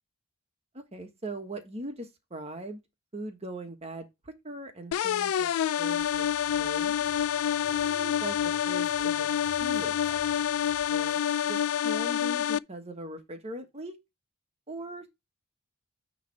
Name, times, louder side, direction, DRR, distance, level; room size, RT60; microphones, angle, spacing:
voice 1, 0.7-2.8 3.1-5.5 5.8-6.3 6.6-7.0 7.7-8.4 8.7-9.3 9.6-10.2 10.9-14.0 14.7-15.1, right 1 dB, 30° right, 1.3 m, -40 dB
sound 1, 4.9-12.6, left 9 dB, 80° left, 0.3 m, -27 dB
sound 2, 6.0-11.2, left 1 dB, 35° left, 2.2 m, -53 dB
9.2 x 3.2 x 4.5 m
head